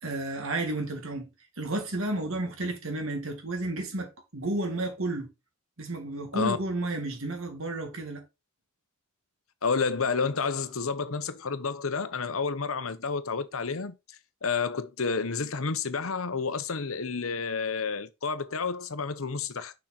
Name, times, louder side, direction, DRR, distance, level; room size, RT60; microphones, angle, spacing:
voice 1, 0.0-1.3 1.6-5.3 5.8-8.2, right 2 dB, 65° right, 2.3 m, -32 dB
voice 2, 9.6-14.0 14.4-19.7, left 5 dB, 70° left, 1.0 m, -30 dB
6.4 x 5.9 x 4.2 m
head